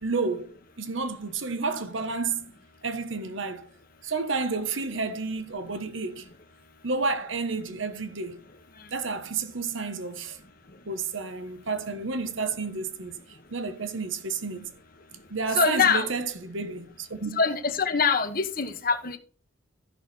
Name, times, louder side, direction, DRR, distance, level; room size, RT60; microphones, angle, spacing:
voice 1, 0.0-2.5 2.8-3.7 4.0-6.3 6.8-8.4 8.9-10.4 10.9-13.2 13.5-14.7 15.3-17.3, right 4 dB, 70° right, 1.2 m, -30 dB
voice 2, 15.5-16.1 17.3-19.2, left 5 dB, 45° left, 1.3 m, -24 dB
13.5 x 6.3 x 4.2 m
head